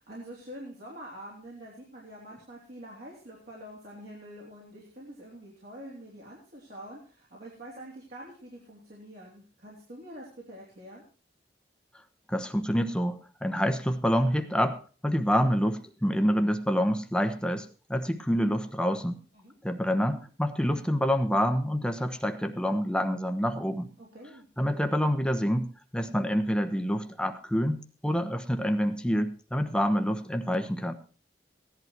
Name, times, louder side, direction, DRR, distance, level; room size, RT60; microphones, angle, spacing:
voice 1, 0.0-11.0 19.3-19.6 24.0-24.5, right 1 dB, 55° right, -4 dB, 3.5 m, -46 dB
voice 2, 12.3-19.2 19.6-23.9 24.6-25.7 25.9-30.9, equal, 5° left, 7 dB, 1.1 m, -27 dB
16.5 x 11.0 x 4.6 m, 0.38 s
head